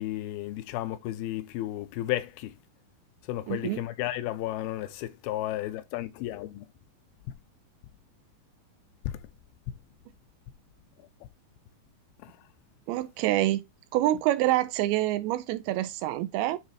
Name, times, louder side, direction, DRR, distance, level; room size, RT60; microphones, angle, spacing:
voice 1, 0.0-2.5 3.3-6.7 9.1-9.2 12.2-12.3, left 14 dB, 85° left, 2.3 m, -33 dB
voice 2, 3.5-3.8 12.9-13.6 13.9-16.6, right 14 dB, 85° right, 2.2 m, -26 dB
9.1 x 3.7 x 3.3 m
omnidirectional pair, 5.0 m